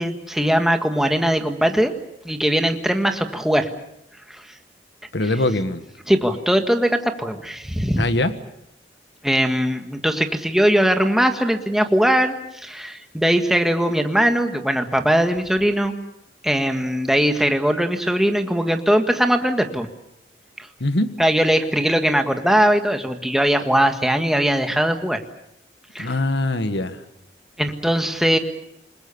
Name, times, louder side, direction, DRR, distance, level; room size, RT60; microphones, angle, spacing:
voice 1, 0.0-1.9 2.2-3.7 4.3-4.4 6.1-8.1 9.2-12.3 12.6-15.9 16.4-19.9 20.6-20.7 21.2-25.2 25.9-26.1 27.6-28.4, equal, ahead, 5 dB, 1.7 m, -20 dB
voice 2, 5.1-5.8 8.0-8.3 20.8-21.1 26.0-27.0, left 2 dB, 75° left, 10 dB, 1.6 m, -22 dB
28.5 x 21.0 x 7.1 m, 0.78 s
head